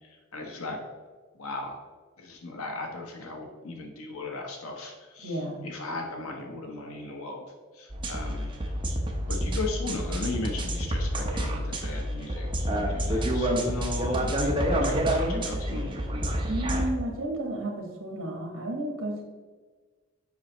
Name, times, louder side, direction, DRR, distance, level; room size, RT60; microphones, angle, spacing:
voice 1, 0.3-0.8 1.3-1.8 2.2-7.4 7.7-8.5 9.3-15.9, left 3 dB, 80° left, 2 dB, 0.9 m, -37 dB
voice 2, 5.2-5.6 16.5-19.2, right 1 dB, 70° right, 2 dB, 1.3 m, -32 dB
sound 1, 7.9-16.9, equal, 20° right, 0.7 m, -28 dB
7.3 x 5.5 x 3.0 m, 1.4 s
head